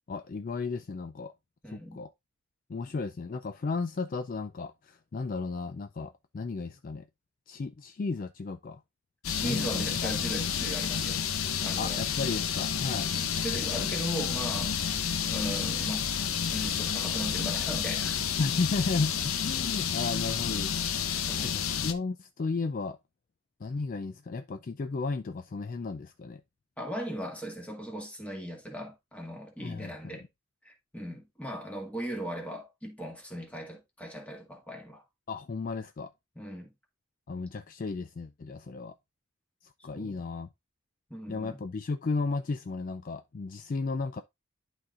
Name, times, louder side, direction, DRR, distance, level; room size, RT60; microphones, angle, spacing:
voice 1, 0.1-1.3 1.7-2.1 2.7-7.1 7.5-8.8 9.4-10.1 11.8-13.1 14.9-15.0 18.4-20.8 21.1-23.0 23.6-26.4 29.6-30.3 35.3-36.1 37.3-38.9 39.8-40.5 41.3-44.2, left 4 dB, 40° left, 0.3 m, -34 dB
voice 2, 1.6-2.0 9.3-11.2 11.6-12.0 13.2-14.8 15.3-16.1 16.5-18.2 21.3-21.6 26.8-30.2 30.6-35.0 36.3-36.7 39.9-40.2 41.1-41.6, right 1 dB, 5° left, 1.7 m, -38 dB
sound 1, 9.2-21.9, left 7 dB, 85° left, 0.7 m, -30 dB
11.5 x 4.0 x 2.4 m
head